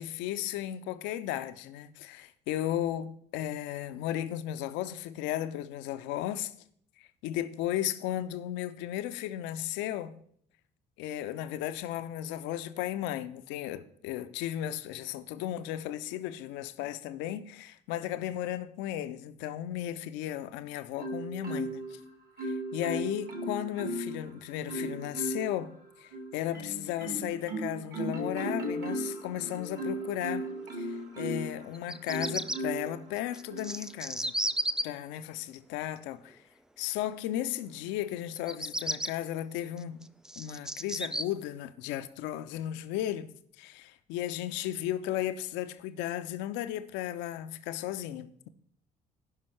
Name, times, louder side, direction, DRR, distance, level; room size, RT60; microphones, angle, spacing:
voice 1, 0.0-6.5 7.0-10.2 11.0-22.0 22.4-30.5 30.7-34.3 34.8-36.4 36.8-40.1 40.4-43.3 43.6-48.5, left 12 dB, 60° left, 0.6 m, -35 dB
Marimba xylophone, 21.0-22.0 22.4-24.2 24.7-25.6 26.1-31.6 32.1-32.9 33.5-33.7, right 1 dB, 50° right, 2.0 m, -36 dB
Bird vocalization bird call bird song, 31.7-32.6 33.3-34.8 38.4-39.1 39.8-41.2, right 1 dB, 5° right, 0.3 m, -33 dB
15.5 x 5.4 x 3.2 m
figure-of-eight pair, 50°, 21 cm